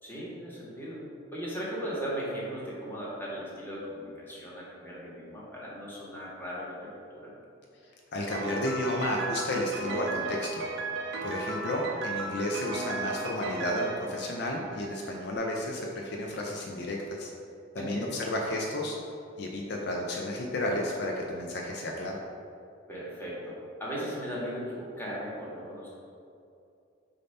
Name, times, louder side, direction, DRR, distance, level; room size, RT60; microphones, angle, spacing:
voice 1, 0.0-7.3 17.7-18.2 22.9-25.9, equal, 10° left, -7 dB, 1.5 m, -37 dB
voice 2, 8.1-10.6 11.2-17.3 17.7-19.0 19.4-22.2, left 1 dB, 60° left, -1 dB, 0.6 m, -32 dB
Piano, 8.3-15.1, right 3 dB, 70° right, 0.8 m, -35 dB
6.7 x 2.8 x 5.3 m, 2.5 s
head